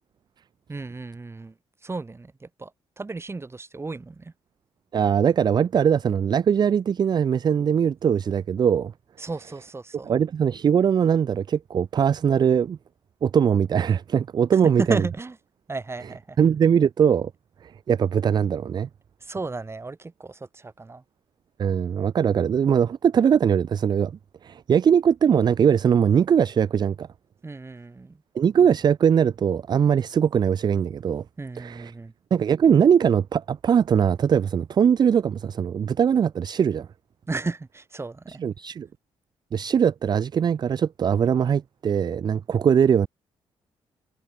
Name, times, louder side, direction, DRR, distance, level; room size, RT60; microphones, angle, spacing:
voice 1, 0.7-1.5 1.8-2.7 3.0-4.3 9.2-10.1 14.5-15.4 15.7-16.4 19.2-21.0 27.4-28.2 31.4-32.1 37.3-38.4, right 3 dB, 25° right, 1.9 m, -33 dB
voice 2, 4.9-8.9 10.0-12.8 13.2-15.0 16.4-17.3 17.6-18.9 21.6-24.1 24.4-27.1 28.4-31.2 31.6-31.9 32.3-36.9 38.4-38.9 39.5-43.1, right 7 dB, 40° right, 0.4 m, -21 dB
cardioid pair, 75°, 11 cm